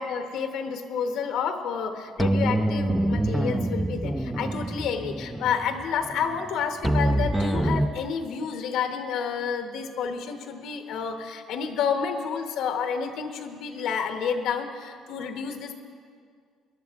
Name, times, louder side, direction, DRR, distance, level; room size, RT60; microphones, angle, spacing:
voice 1, 0.0-15.8, left 6 dB, 80° left, 6 dB, 1.0 m, -30 dB
sound 1, 2.2-7.9, right 1 dB, 5° right, 0.5 m, -26 dB
19.5 x 11.0 x 3.5 m, 2.1 s
cardioid pair, 115°, 0 cm